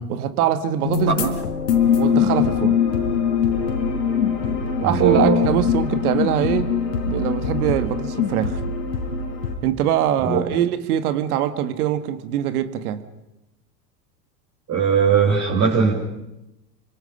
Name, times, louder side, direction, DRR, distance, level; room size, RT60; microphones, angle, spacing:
voice 1, 0.1-1.3 2.0-2.8 4.8-6.7 7.1-8.6 9.6-13.0, right 10 dB, 65° right, 11 dB, 1.9 m, -23 dB
sound 1, 0.8-9.6, left 7 dB, 80° left, 4.3 m, -22 dB
voice 2, 4.8-5.4 10.2-10.4 14.7-15.9, right 6 dB, 30° right, -2 dB, 4.3 m, -19 dB
29.5 x 25.0 x 5.6 m, 0.92 s
hypercardioid pair, 95°, 49 cm